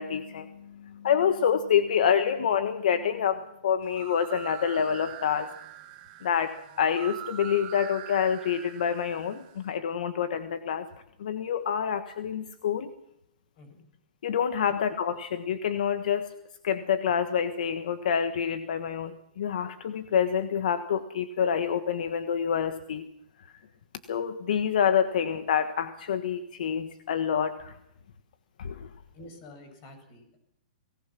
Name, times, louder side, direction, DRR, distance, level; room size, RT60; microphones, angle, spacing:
voice 1, 0.0-5.5 6.2-10.8 11.2-12.9 14.2-16.3 16.6-23.1 23.4-23.5 24.1-27.7 28.6-28.9, left 8 dB, 70° left, 9 dB, 1.4 m, -27 dB
sound 1, 3.8-9.6, right 13 dB, 35° right, 2.2 m, -44 dB
voice 2, 13.6-13.9 14.7-14.8 29.1-30.4, left 1 dB, 35° left, 7 dB, 7.3 m, -49 dB
23.0 x 19.0 x 6.0 m, 0.79 s
hypercardioid pair, 155°, 5 cm